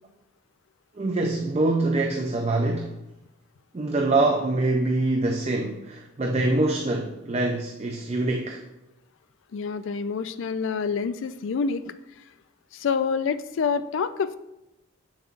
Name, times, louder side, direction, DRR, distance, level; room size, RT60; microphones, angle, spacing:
voice 1, 1.0-2.9 3.7-8.6, right 2 dB, 30° right, 2 dB, 0.4 m, -24 dB
voice 2, 9.5-11.9 12.7-14.4, left 5 dB, 65° left, 12 dB, 0.4 m, -27 dB
7.2 x 7.2 x 2.5 m, 0.94 s
head